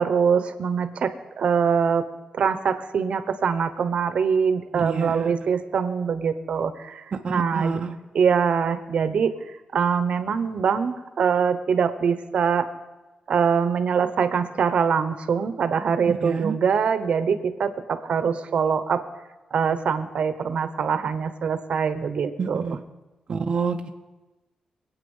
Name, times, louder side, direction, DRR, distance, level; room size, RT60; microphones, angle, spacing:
voice 1, 0.0-2.0 2.3-7.8 8.1-9.3 9.7-12.6 13.3-19.0 19.5-22.6, right 6 dB, 60° right, 10 dB, 1.0 m, -23 dB
voice 2, 4.7-5.3 7.2-8.0 16.1-16.6 22.4-22.8 23.3-23.9, right 5 dB, 40° right, 1 dB, 0.8 m, -28 dB
25.0 x 8.9 x 5.5 m, 1.1 s
wide cardioid pair, 150°, 2 cm